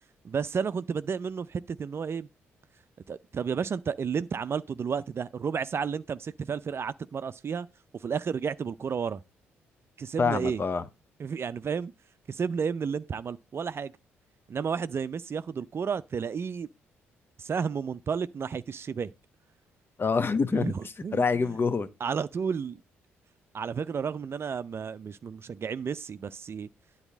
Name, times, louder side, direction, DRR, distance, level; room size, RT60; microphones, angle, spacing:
voice 1, 0.2-2.3 3.1-7.7 8.0-9.2 10.0-10.6 11.2-11.9 12.3-13.9 14.5-16.7 17.4-19.1 20.5-21.2 22.0-22.8 23.5-26.7, right 6 dB, 40° right, 0.5 m, -32 dB
voice 2, 10.2-10.8 20.0-20.7 21.1-21.9, left 4 dB, 35° left, 1.1 m, -26 dB
9.9 x 4.2 x 7.2 m
hypercardioid pair, 45°, 6 cm